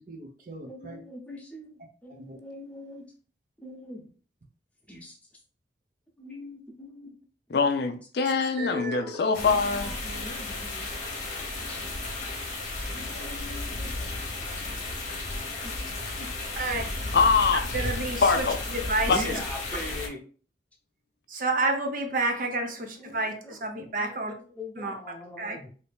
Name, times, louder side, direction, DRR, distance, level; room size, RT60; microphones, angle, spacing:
voice 1, 0.0-1.0 2.2-2.4 8.6-9.3 16.6-16.8 17.7-19.4 21.3-24.3 24.8-24.9 25.4-25.6, right 2 dB, 50° right, 0.6 m, -30 dB
voice 2, 0.7-1.7 2.0-3.0 3.6-4.1 4.9-5.2 6.2-7.2 8.7-10.9 11.7-11.9 12.9-14.1 15.6-15.7 16.2-16.3 19.1-20.2 23.0-23.2 23.4-23.6 24.0-25.7, left 1 dB, 5° left, 0.8 m, -41 dB
voice 3, 7.5-9.9 17.1-17.6 18.2-18.6 19.1-19.4, left 4 dB, 65° left, 0.4 m, -23 dB
sound 1, 9.3-20.1, left 2 dB, 45° left, 0.8 m, -34 dB
2.8 x 2.7 x 3.4 m
head